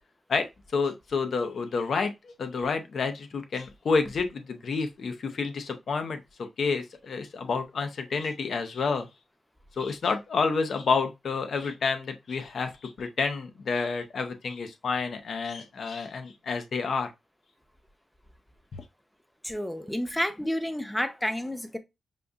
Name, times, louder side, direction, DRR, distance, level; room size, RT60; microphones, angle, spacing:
voice 1, 0.3-6.2 6.6-9.1 9.8-17.1 18.7-18.8, left 4 dB, 70° left, 0.7 m, -29 dB
voice 2, 19.4-21.8, equal, 5° left, 0.6 m, -30 dB
5.2 x 2.5 x 2.4 m
cardioid pair, 80°, 0 cm